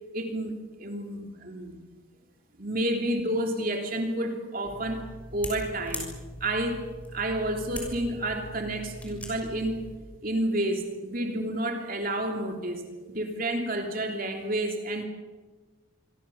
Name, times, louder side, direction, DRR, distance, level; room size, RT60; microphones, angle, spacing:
voice 1, 0.1-1.8 2.6-6.1 6.4-6.9 7.1-9.9 10.2-15.0, right 1 dB, 45° right, 3 dB, 3.2 m, -30 dB
sound 1, 4.6-10.0, equal, 5° left, 6.5 m, -41 dB
27.0 x 24.0 x 7.2 m, 1.3 s
head